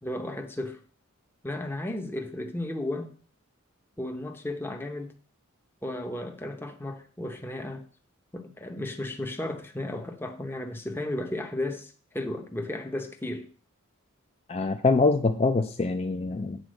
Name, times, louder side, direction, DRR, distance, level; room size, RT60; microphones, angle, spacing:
voice 1, 0.0-0.8 1.4-3.1 4.0-5.1 5.8-7.8 8.3-13.5, left 1 dB, 10° left, 0.8 m, -34 dB
voice 2, 14.5-16.6, left 3 dB, 30° left, 0.4 m, -24 dB
7.9 x 4.3 x 6.5 m
head